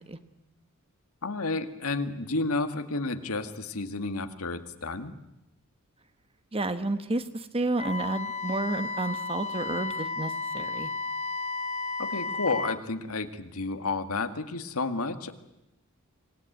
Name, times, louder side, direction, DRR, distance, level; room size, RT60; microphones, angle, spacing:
voice 1, 1.2-5.1 12.0-15.3, left 3 dB, 75° left, 8 dB, 2.0 m, -31 dB
voice 2, 6.5-10.9, right 2 dB, 25° right, 10 dB, 1.3 m, -31 dB
Wind instrument woodwind instrument, 7.8-12.8, left 3 dB, 30° left, 0.9 m, -33 dB
26.0 x 19.5 x 9.2 m, 0.93 s
head